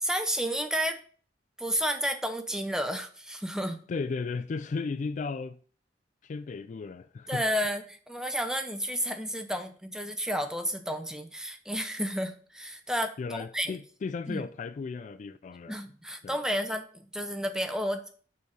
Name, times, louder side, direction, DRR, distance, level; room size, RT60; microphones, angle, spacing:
voice 1, 0.0-1.0 1.6-3.8 7.3-13.1 13.5-13.8 14.3-14.4 15.7-18.1, equal, 5° right, 0.6 m, -31 dB
voice 2, 3.9-5.6 6.2-7.4 13.2-15.8 16.2-16.4, left 4 dB, 45° left, 0.3 m, -35 dB
5.6 x 4.6 x 4.8 m
head